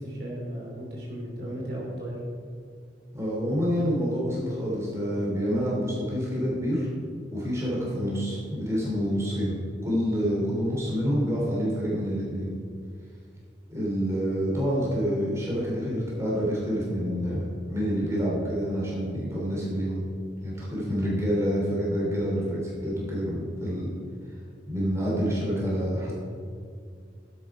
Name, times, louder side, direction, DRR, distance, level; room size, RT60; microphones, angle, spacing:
voice 1, 0.0-2.2, right 1 dB, 60° right, -3 dB, 2.9 m, -35 dB
voice 2, 3.1-6.9 7.3-9.6 9.8-12.5 13.7-20.0 20.4-23.9 24.7-26.1, equal, 15° right, -6 dB, 3.1 m, -27 dB
11.5 x 8.7 x 4.8 m, 2.2 s
head